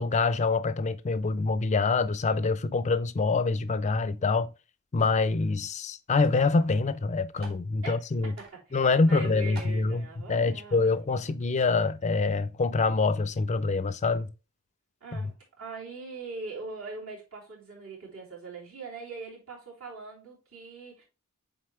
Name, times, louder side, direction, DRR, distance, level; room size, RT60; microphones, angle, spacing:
voice 1, 0.0-4.5 4.9-8.3 8.7-14.3, left 3 dB, 30° left, 0.4 m, -25 dB
sound 1, 5.0-5.3 6.2-6.3 6.6-6.7 7.3-7.7 8.4-8.6 9.0-9.1 9.6-9.8, right 3 dB, 45° right, 2.0 m, -48 dB
voice 2, 7.8-11.2 15.0-21.0, right 3 dB, 65° right, 3.3 m, -42 dB
7.6 x 4.0 x 3.2 m
head